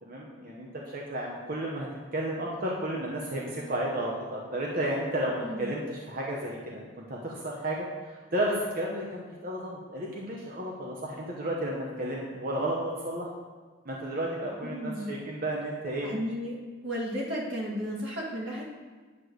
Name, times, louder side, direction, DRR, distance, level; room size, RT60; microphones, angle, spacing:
voice 1, 0.0-13.3 13.8-16.1, right 1 dB, 50° right, -2 dB, 0.9 m, -33 dB
voice 2, 14.6-15.2 16.0-18.6, equal, 85° right, -5 dB, 2.2 m, -34 dB
9.7 x 3.2 x 6.4 m, 1.4 s
head